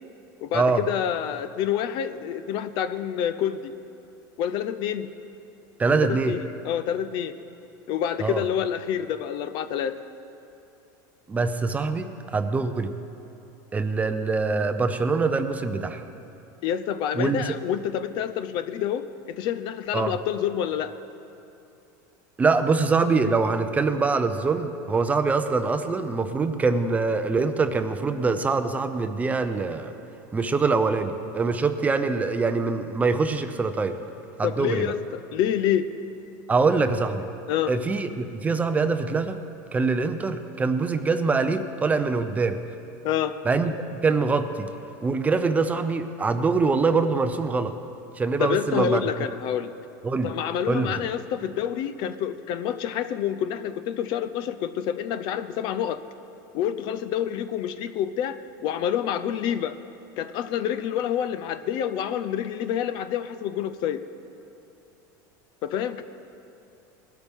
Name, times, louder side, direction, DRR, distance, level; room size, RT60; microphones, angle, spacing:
voice 1, 0.4-3.7 4.4-5.1 6.0-7.3 7.9-9.9 16.6-20.9 34.4-35.9 37.5-37.7 43.0-43.3 48.4-49.7 50.2-56.0 56.5-59.8 60.2-64.0 65.6-66.0, left 9 dB, 50° left, 11 dB, 0.5 m, -28 dB
voice 2, 5.8-6.3 8.2-8.4 11.3-12.9 13.7-16.0 17.1-17.5 19.9-20.1 22.4-29.9 30.3-34.0 34.4-34.9 36.5-37.2 37.7-39.4 39.7-42.6 43.4-44.7 45.0-47.8 48.2-49.0 50.0-50.3 50.7-50.9, right 4 dB, 15° right, 9 dB, 0.5 m, -24 dB
20.0 x 12.5 x 3.6 m, 2.8 s
supercardioid pair, 140°, 10 cm